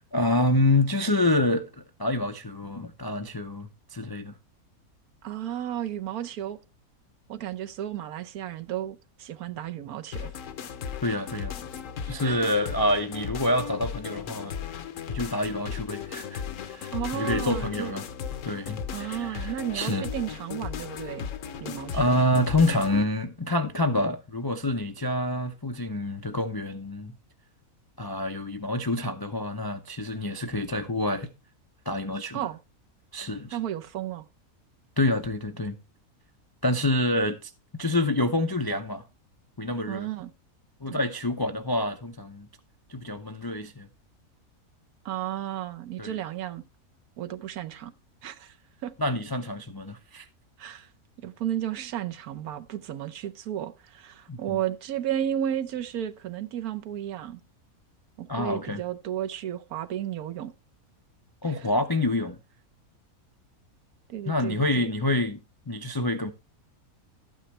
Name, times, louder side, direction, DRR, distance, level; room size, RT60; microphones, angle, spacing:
voice 1, 0.1-1.7 2.0-4.3 11.0-11.5 12.1-14.5 15.1-18.0 18.4-20.1 21.7-27.1 28.0-31.3 31.9-32.4 33.1-33.6 35.0-35.8 36.6-37.5 37.8-39.0 39.6-40.1 40.8-42.5 42.9-43.9 46.0-46.2 49.0-50.3 54.3-54.6 58.3-58.8 61.4-62.4 64.3-65.4 65.7-66.3, left 1 dB, 40° left, 0.3 m, -27 dB
voice 2, 5.2-6.6 7.3-10.3 12.2-12.6 16.9-18.0 18.9-21.3 21.6-22.2 32.3-32.6 33.5-34.2 39.9-40.3 40.9-41.0 45.0-46.6 47.2-47.9 48.2-48.5 48.8-48.9 50.6-50.9 51.2-57.4 58.2-60.5 61.4-61.7 64.1-64.9, right 11 dB, 80° right, 1.3 m, -33 dB
sound 1, 10.1-23.0, left 7 dB, 65° left, 1.1 m, -36 dB
12.5 x 8.9 x 3.2 m
omnidirectional pair, 1.5 m